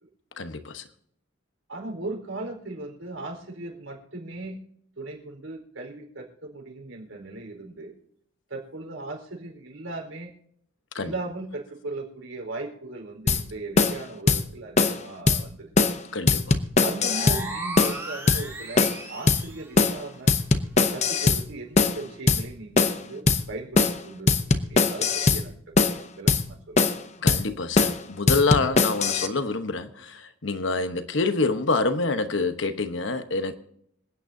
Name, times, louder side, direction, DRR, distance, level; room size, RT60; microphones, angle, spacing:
voice 1, 0.4-0.8 10.9-11.1 16.1-16.6 27.2-33.6, left 3 dB, 65° left, 1.0 m, -27 dB
voice 2, 1.7-4.6 5.0-7.9 8.5-10.3 11.0-15.9 16.8-20.4 20.9-25.5 25.9-26.7, right 2 dB, 75° right, 4.4 m, -37 dB
sound 1, 13.3-13.4 13.8-14.0 14.3-14.4 14.8-15.0 15.3-15.4 15.8-16.0 16.3-17.4 17.8-18.0 18.3-18.4 18.8-19.0 19.3-19.4 19.8-20.0 20.3-21.4 21.8-22.0 22.3-22.4 22.8-23.0 23.3-23.4 23.8-24.0 24.3-25.4 25.8-26.0 26.3-26.4 26.8-27.0 27.3-27.4 27.8-28.0 28.3-29.3, left 4 dB, 35° left, 0.7 m, -21 dB
sound 2, 17.0-19.7, right 2 dB, 15° right, 2.4 m, -36 dB
27.0 x 9.1 x 2.7 m
head